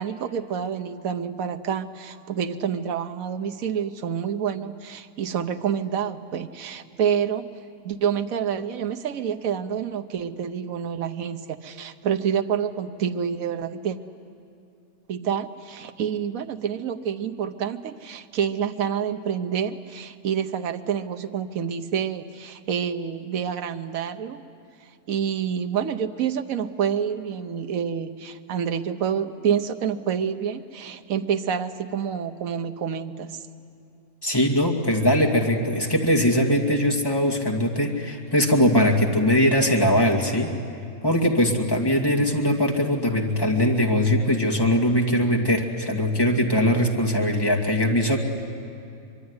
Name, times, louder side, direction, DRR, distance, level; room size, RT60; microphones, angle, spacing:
voice 1, 0.0-7.5 7.8-14.0 15.1-24.4 25.1-33.4, right 8 dB, 70° right, 8 dB, 1.3 m, -28 dB
voice 2, 34.2-40.5 41.0-48.2, equal, 15° left, 1 dB, 2.2 m, -21 dB
24.5 x 23.0 x 9.7 m, 2.5 s
omnidirectional pair, 1.5 m